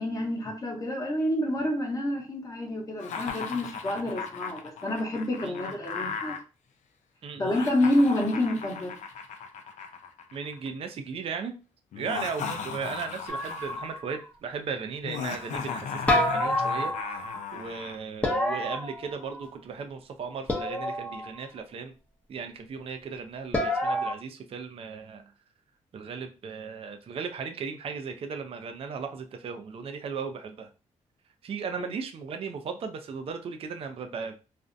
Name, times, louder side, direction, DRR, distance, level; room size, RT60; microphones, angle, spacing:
voice 1, 0.0-6.4 7.4-9.0 31.8-31.9, left 1 dB, 30° left, 0.9 m, -28 dB
Laughter, 3.0-6.4 7.4-10.7 11.9-13.9 15.0-18.0, left 6 dB, 70° left, 0.4 m, -37 dB
voice 2, 7.2-7.6 10.3-11.5 12.0-21.9 22.3-25.2 25.9-30.7 31.4-34.4, right 5 dB, 50° right, 0.4 m, -36 dB
sound 1, 13.3-14.2 16.1-17.4 18.2-19.5 20.5-21.3 23.5-24.1, left 1 dB, 10° left, 0.6 m, -28 dB
2.5 x 2.0 x 2.5 m
cardioid pair, 65°, 12 cm